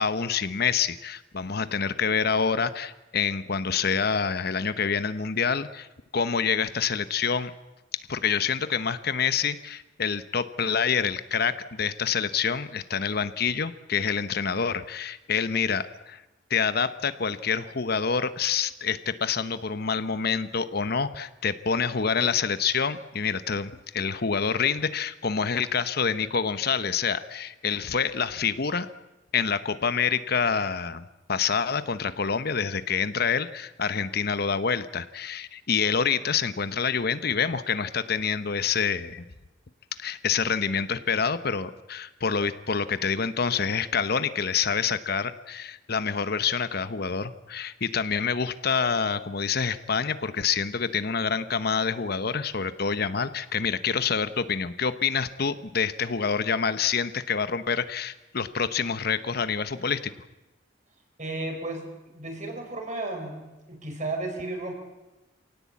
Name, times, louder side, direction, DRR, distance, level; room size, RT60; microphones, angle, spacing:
voice 1, 0.0-5.9 6.1-7.5 8.1-16.2 16.5-28.9 29.3-39.2 40.0-60.1, left 6 dB, 60° left, 13 dB, 0.9 m, -27 dB
voice 2, 61.2-64.7, right 2 dB, 45° right, 3 dB, 5.4 m, -34 dB
26.0 x 17.5 x 8.5 m, 1.0 s
head